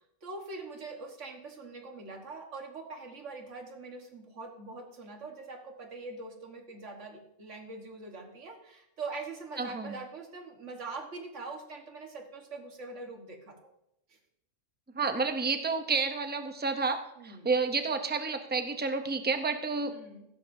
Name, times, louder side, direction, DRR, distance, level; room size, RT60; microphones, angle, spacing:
voice 1, 0.2-13.6 14.1-14.2 17.2-17.5 19.9-20.2, right 3 dB, 70° right, 2 dB, 1.8 m, -43 dB
voice 2, 9.6-10.0 14.9-19.9, right 4 dB, 10° right, 7 dB, 0.5 m, -30 dB
15.5 x 12.0 x 2.7 m, 0.85 s
omnidirectional pair, 1.3 m